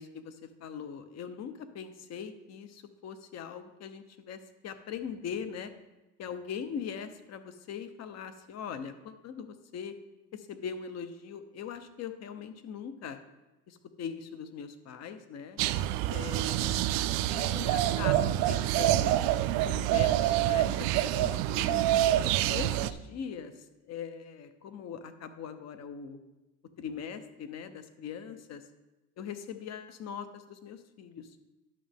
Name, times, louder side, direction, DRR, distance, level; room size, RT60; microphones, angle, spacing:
voice 1, 0.0-5.7 6.2-9.9 10.3-13.2 13.7-15.6 16.1-19.1 19.6-21.9 22.5-26.2 26.8-28.6 29.2-31.3, left 7 dB, 50° left, 10 dB, 0.9 m, -41 dB
sound 1, 15.6-22.9, right 13 dB, 85° right, 0.5 m, -27 dB
11.0 x 6.4 x 3.6 m, 1.0 s
cardioid pair, 115°, 33 cm